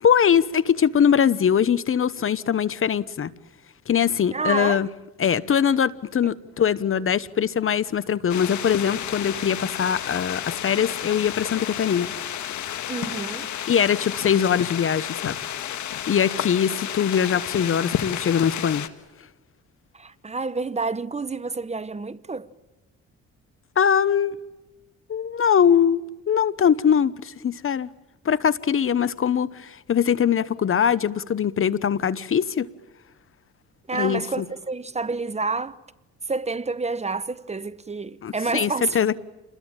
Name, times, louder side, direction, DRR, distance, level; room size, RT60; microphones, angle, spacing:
voice 1, 0.0-3.3 3.9-4.9 5.2-12.1 13.7-15.4 16.1-18.9 23.8-24.4 25.1-27.9 28.2-32.7 33.9-34.4 38.2-39.2, left 8 dB, 45° left, 1.0 m, -22 dB
voice 2, 4.3-4.8 12.9-13.5 19.9-22.5 33.9-35.8 36.3-39.0, right 3 dB, 20° right, 1.0 m, -28 dB
sound 1, 8.3-18.9, left 10 dB, 70° left, 1.8 m, -31 dB
28.5 x 21.5 x 9.0 m
cardioid pair, 90°, 30 cm